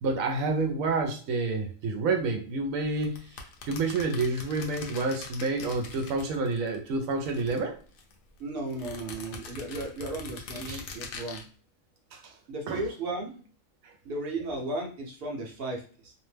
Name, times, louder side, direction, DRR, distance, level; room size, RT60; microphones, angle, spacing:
voice 1, 0.0-3.2 3.7-7.8 10.7-10.8 12.1-12.3 12.7-12.8, right 3 dB, 90° right, 5 dB, 1.0 m, -29 dB
sound 1, 3.0-6.8 7.0-8.1 8.7-11.4, left 4 dB, 85° left, 1.0 m, -43 dB
voice 2, 8.4-11.4 12.5-13.4 14.0-16.1, right 2 dB, 55° right, 0 dB, 0.8 m, -35 dB
2.8 x 2.0 x 3.2 m, 0.41 s
omnidirectional pair, 1.4 m